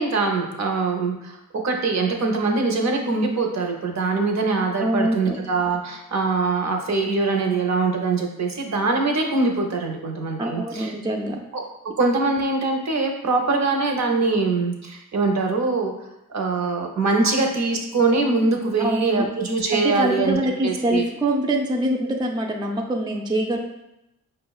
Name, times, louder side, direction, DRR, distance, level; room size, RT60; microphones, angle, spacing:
voice 1, 0.0-1.4 1.6-10.9 11.5-11.6 12.0-15.9 16.3-20.4 20.6-21.1, right 3 dB, 55° right, 2 dB, 0.6 m, -23 dB
voice 2, 4.8-5.4 10.4-11.4 18.8-19.3 19.7-23.6, right 1 dB, 15° right, 1 dB, 0.4 m, -24 dB
5.2 x 2.1 x 2.3 m, 0.89 s
cardioid pair, 65°, 33 cm